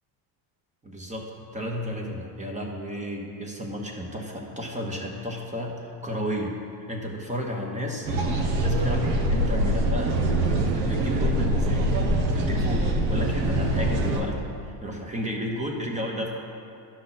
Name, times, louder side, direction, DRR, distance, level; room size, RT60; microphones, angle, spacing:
voice 1, 0.8-6.5 6.9-8.1 8.6-10.2 10.8-11.9 12.3-14.5 14.8-16.3, equal, 15° right, 0 dB, 1.2 m, -32 dB
sound 1, 8.1-14.2, right 1 dB, 85° right, 1.2 m, -24 dB
12.0 x 5.9 x 4.1 m, 2.6 s
supercardioid pair, 115°, 48 cm